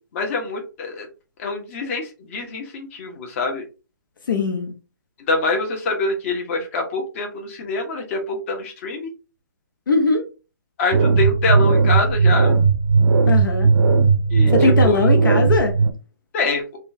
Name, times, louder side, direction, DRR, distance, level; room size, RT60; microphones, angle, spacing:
voice 1, 0.1-1.1 1.4-3.6 5.3-9.1 10.8-12.6 14.3-15.1 16.3-16.6, left 3 dB, 40° left, 1.2 m, -25 dB
voice 2, 4.3-4.7 9.9-10.2 13.3-13.7 14.5-15.8, left 4 dB, 75° left, 1.0 m, -20 dB
sound 1, 10.9-15.9, right 4 dB, 60° right, 0.6 m, -16 dB
5.3 x 2.4 x 2.7 m
hypercardioid pair, 150°, 11 cm